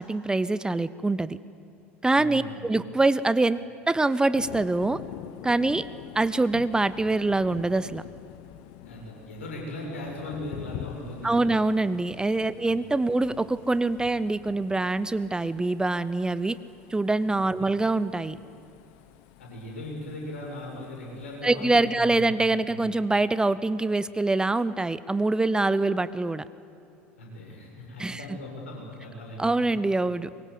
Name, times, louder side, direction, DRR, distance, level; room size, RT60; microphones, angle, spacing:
voice 1, 0.0-1.4 2.0-3.6 3.9-5.0 5.4-5.9 6.1-8.0 11.2-16.6 16.9-18.4 21.4-26.4 28.0-28.2 29.4-30.4, right 2 dB, 10° right, 16 dB, 0.7 m, -24 dB
voice 2, 2.1-2.6 8.8-11.6 12.6-12.7 17.6-17.8 19.4-22.9 27.2-29.7, left 1 dB, 75° left, -1 dB, 7.3 m, -39 dB
Thunder, 4.4-22.2, left 13 dB, 60° left, 1.0 m, -46 dB
23.5 x 23.0 x 8.6 m, 2.8 s
figure-of-eight pair, 75°, 7 cm